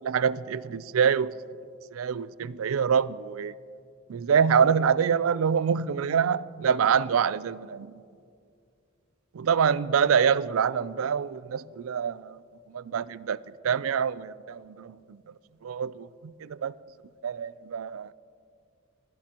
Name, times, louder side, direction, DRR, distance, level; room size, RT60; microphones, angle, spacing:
voice 1, 0.0-1.4 1.9-3.5 4.1-8.0 9.3-12.4 12.7-13.4 13.6-15.2 15.6-16.7 17.2-18.1, right 7 dB, 90° right, 0.4 m, -26 dB
24.0 x 17.5 x 3.0 m
head